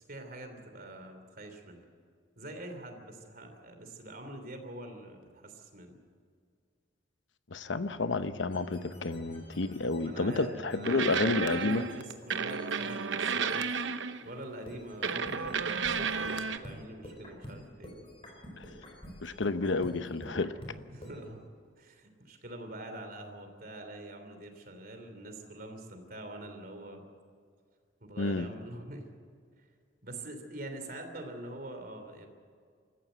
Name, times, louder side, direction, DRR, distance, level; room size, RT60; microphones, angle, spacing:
voice 1, 0.0-1.8 2.4-6.0 10.0-17.9 20.9-21.4 21.8-27.0 28.0-29.1 30.0-32.3, right 1 dB, 50° right, 3.1 m, -45 dB
voice 2, 7.5-11.8 18.6-18.7 19.2-20.5 28.2-28.5, left 3 dB, 80° left, 0.9 m, -30 dB
sound 1, 7.6-12.7, left 1 dB, 45° left, 1.8 m, -55 dB
sound 2, 8.5-13.9 14.7-21.2, equal, 30° left, 4.9 m, -49 dB
sound 3, 10.8-14.3 15.0-16.6, right 5 dB, 75° right, 0.9 m, -32 dB
25.5 x 14.5 x 8.1 m
head